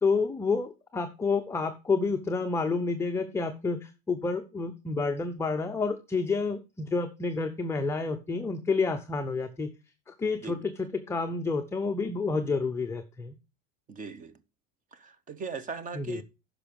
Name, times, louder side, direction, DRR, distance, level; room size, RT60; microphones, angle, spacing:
voice 1, 0.0-9.7 10.1-13.4 15.9-16.2, left 4 dB, 10° left, 0.5 m, -29 dB
voice 2, 13.9-14.3 14.9-16.2, right 5 dB, 20° right, 0.8 m, -39 dB
10.0 x 6.0 x 5.1 m
supercardioid pair, 150°, 36 cm